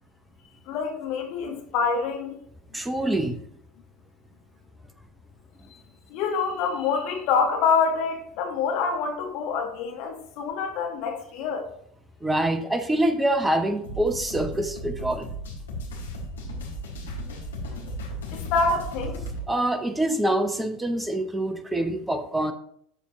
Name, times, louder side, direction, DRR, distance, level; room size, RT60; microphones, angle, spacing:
voice 1, 0.6-2.4 6.1-11.7 18.3-19.2, left 5 dB, 50° left, 1.3 m, -26 dB
voice 2, 2.7-3.4 12.2-15.3 19.5-22.5, right 1 dB, 10° right, 0.8 m, -25 dB
sound 1, 13.8-19.5, equal, 70° left, 1.7 m, -35 dB
12.5 x 4.4 x 2.9 m
figure-of-eight pair, 75°, 0 cm